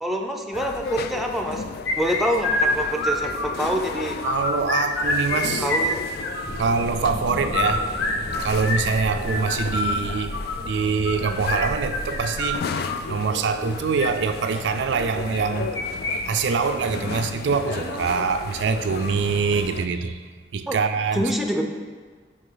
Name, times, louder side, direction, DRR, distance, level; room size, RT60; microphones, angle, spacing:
voice 1, 0.0-1.7 1.9-4.2 5.6-6.0 20.7-20.8 21.1-21.6, equal, ahead, 0.5 m, -26 dB
sound 1, 0.5-19.9, left 5 dB, 55° left, 0.3 m, -35 dB
sound 2, 1.9-3.8 4.1-5.4 5.6-6.7 7.4-13.0 13.8-14.1 15.3-16.1 16.4-16.5 16.9-17.0 17.6-18.0, left 2 dB, 80° left, 1.0 m, -26 dB
voice 2, 4.2-5.7 6.6-7.9 8.4-10.4 10.6-12.7 13.1-15.8 16.2-20.2 20.5-21.3, right 5 dB, 65° right, 0.3 m, -24 dB
sound 3, 6.4-12.6, equal, 35° left, 2.0 m, -35 dB
10.0 x 3.4 x 3.8 m
head